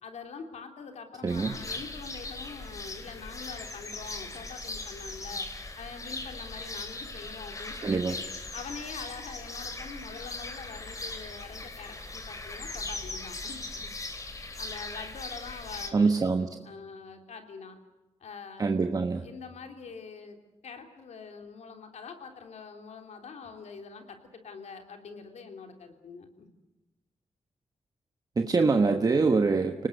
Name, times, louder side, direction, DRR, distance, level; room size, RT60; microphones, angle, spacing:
voice 1, 0.0-5.5 5.8-8.2 8.5-13.9 14.2-16.3 16.6-17.8 18.2-18.7 19.2-20.4 20.6-26.5, left 5 dB, 90° left, 5 dB, 3.3 m, -44 dB
voice 2, 1.2-1.5 7.8-8.2 15.9-16.5 18.6-19.2 28.4-29.9, right 4 dB, 35° right, 6 dB, 1.2 m, -24 dB
sound 1, 1.3-15.9, left 2 dB, 30° left, 2.9 m, -39 dB
30.0 x 19.0 x 8.0 m, 1.0 s
wide cardioid pair, 150°, 11 cm